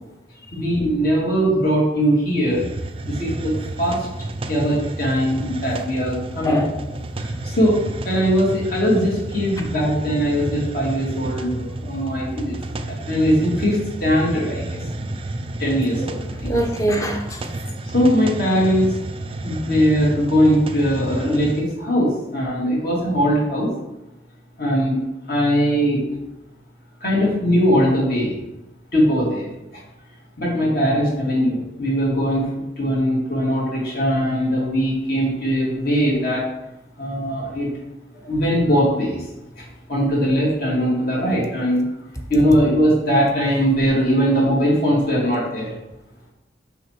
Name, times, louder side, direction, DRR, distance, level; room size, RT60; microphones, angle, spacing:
voice 1, 0.5-2.6 3.0-4.0 4.5-6.6 7.2-12.6 12.9-14.8 15.6-16.5 17.9-19.0 19.4-23.7 24.6-25.0 25.3-26.0 27.0-28.4 28.9-29.5 30.4-32.5 32.8-36.5 37.0-37.7 38.1-39.2 39.6-39.7 39.9-41.9 42.3-45.7, equal, 50° left, -4 dB, 2.6 m, -20 dB
Hiss, 2.5-21.7, right 2 dB, 30° right, 0.5 m, -31 dB
voice 2, 6.4-6.8 16.0-16.1 16.4-17.5, equal, 15° left, 2 dB, 0.9 m, -23 dB
6.3 x 6.3 x 4.5 m, 0.96 s
head